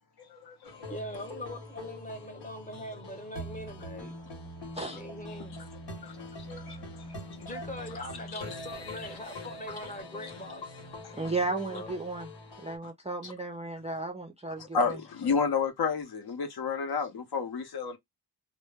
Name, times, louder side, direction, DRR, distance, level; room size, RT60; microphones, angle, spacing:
voice 1, 0.2-0.7 6.0-7.2 7.5-7.6 8.3-8.4 10.2-10.3 11.0-11.3 13.2-13.3 14.6-18.0, left 5 dB, 65° left, 0.8 m, -32 dB
sound 1, 0.6-12.8, left 1 dB, 80° left, 1.1 m, -43 dB
voice 2, 0.9-4.1 4.9-5.6 7.4-10.7 11.5-11.9, equal, 20° left, 0.8 m, -42 dB
voice 3, 11.1-12.3 12.6-15.0, right 3 dB, 15° right, 0.3 m, -34 dB
2.0 x 2.0 x 3.3 m
wide cardioid pair, 175°, 42 cm